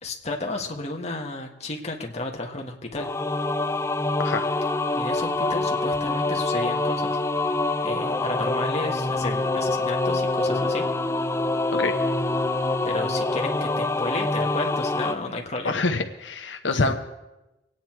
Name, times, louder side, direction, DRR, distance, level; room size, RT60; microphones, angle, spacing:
voice 1, 0.0-3.1 4.9-7.2 7.8-10.9 12.8-15.8 16.7-16.9, left 2 dB, 35° left, 1 dB, 1.7 m, -32 dB
sound 1, 3.0-15.1, left 2 dB, 15° left, 0.5 m, -25 dB
voice 2, 15.6-16.9, left 3 dB, 90° left, 6 dB, 0.9 m, -26 dB
24.5 x 9.3 x 4.6 m, 0.99 s
head